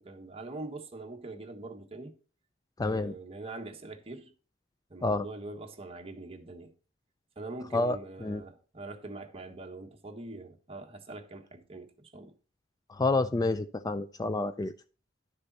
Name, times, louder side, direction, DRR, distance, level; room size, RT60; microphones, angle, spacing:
voice 1, 0.0-2.1 2.8-4.3 4.9-6.7 7.4-12.3, right 2 dB, 30° right, 1.3 m, -43 dB
voice 2, 2.8-3.1 5.0-5.2 7.7-8.0 8.2-8.4 13.0-14.7, left 2 dB, 20° left, 0.4 m, -28 dB
11.5 x 6.6 x 4.1 m
head